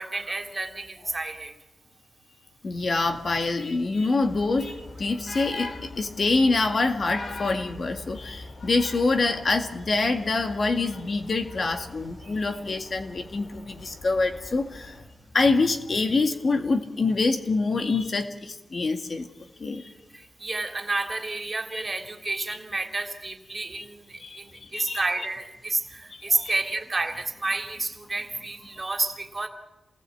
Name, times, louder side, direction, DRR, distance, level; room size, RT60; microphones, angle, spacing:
voice 1, 0.0-1.5 3.0-3.1 12.2-12.3 20.1-29.5, right 3 dB, 30° right, 4 dB, 3.3 m, -30 dB
voice 2, 2.6-14.9 15.3-19.3 19.6-19.8 21.7-21.8 23.8-23.9 24.2-24.4 24.7-25.0 26.1-26.5, left 3 dB, 50° left, 6 dB, 2.1 m, -25 dB
sound 1, 4.2-15.0, left 2 dB, 75° left, 4.1 m, -46 dB
27.5 x 19.5 x 8.6 m, 1.1 s
wide cardioid pair, 95°, 0 cm